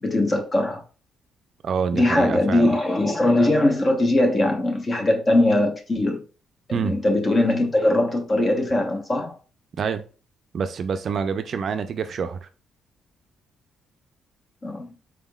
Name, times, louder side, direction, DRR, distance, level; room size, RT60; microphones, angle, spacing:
voice 1, 0.0-0.8 1.9-6.2 6.7-9.4 14.6-14.9, left 1 dB, 30° left, 0.9 m, -21 dB
voice 2, 1.6-2.7 6.7-7.0 9.8-10.0 10.5-12.5, right 6 dB, 55° right, 0.4 m, -26 dB
4.6 x 3.5 x 2.3 m
cardioid pair, 90°, 0 cm